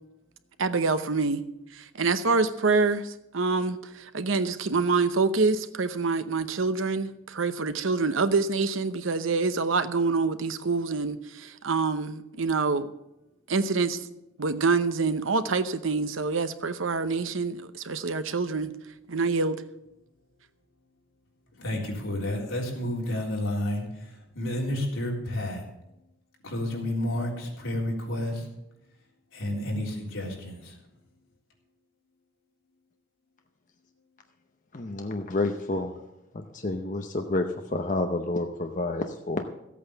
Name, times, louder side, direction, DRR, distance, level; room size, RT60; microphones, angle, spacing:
voice 1, 0.6-1.4 1.7-12.9 13.5-14.1 14.4-18.7 19.1-19.6, right 4 dB, 80° right, 0.8 m, -26 dB
voice 2, 21.6-25.6 26.4-28.5 29.3-30.8, left 1 dB, 80° left, 3.7 m, -31 dB
voice 3, 34.7-35.9 36.3-39.5, left 2 dB, 40° left, 0.7 m, -29 dB
14.0 x 8.5 x 6.9 m
head